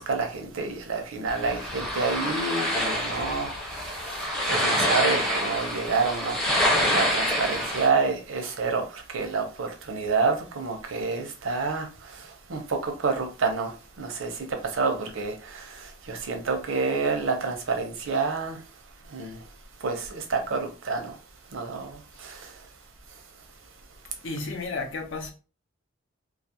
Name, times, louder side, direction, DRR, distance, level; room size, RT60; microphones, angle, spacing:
voice 1, 0.0-6.4 6.7-13.7 14.0-14.5 14.7-18.6 19.1-19.4 19.8-21.2 21.5-22.5, right 4 dB, 80° right, 0.6 m, -29 dB
sound 1, 1.3-7.9, equal, 5° left, 0.5 m, -26 dB
voice 2, 24.1-25.3, left 3 dB, 70° left, 0.5 m, -33 dB
2.3 x 2.0 x 2.7 m
head